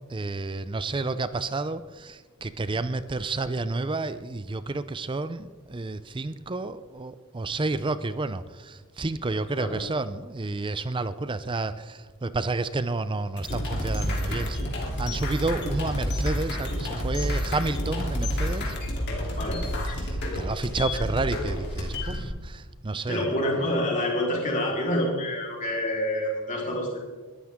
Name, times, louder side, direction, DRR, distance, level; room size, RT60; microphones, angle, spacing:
voice 1, 0.1-14.6 15.0-18.7 19.9-23.3, right 3 dB, 20° right, 14 dB, 0.5 m, -30 dB
voice 2, 9.5-9.8 19.3-19.6 23.1-27.0, left 1 dB, 35° left, -2 dB, 4.0 m, -27 dB
sound 1, 13.4-22.2, equal, 50° left, 3.2 m, -29 dB
21.5 x 13.5 x 3.7 m, 1.3 s
head